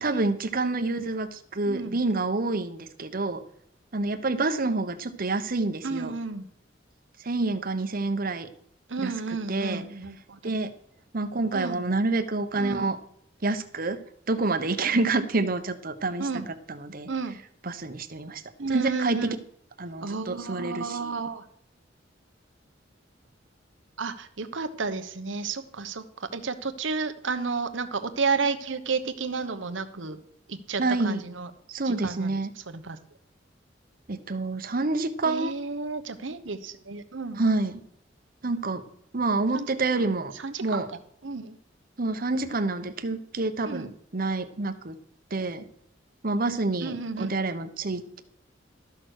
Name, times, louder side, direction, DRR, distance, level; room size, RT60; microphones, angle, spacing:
voice 1, 0.0-3.4 3.9-6.1 7.2-8.5 9.0-9.8 10.4-10.7 11.1-13.0 13.4-14.0 14.3-16.4 16.7-17.1 17.6-18.4 18.7-19.4 19.8-21.1 30.8-31.2 31.7-32.5 34.1-35.5 37.4-37.8 38.4-38.8 39.1-40.3 40.6-40.9 42.0-44.9 45.3-45.6 46.2-48.2, right 3 dB, 50° right, 10 dB, 0.9 m, -28 dB
voice 2, 1.7-2.0 5.8-6.5 8.9-10.5 11.5-11.8 12.6-12.9 16.2-16.5 17.1-17.4 18.6-19.4 20.0-21.4 24.0-26.0 26.3-30.2 30.5-31.5 31.8-33.0 35.2-37.4 39.5-39.7 40.3-40.8 41.2-41.6 43.6-43.9 46.8-47.3, right 4 dB, 85° right, 10 dB, 1.0 m, -32 dB
13.0 x 6.4 x 6.4 m, 0.71 s
head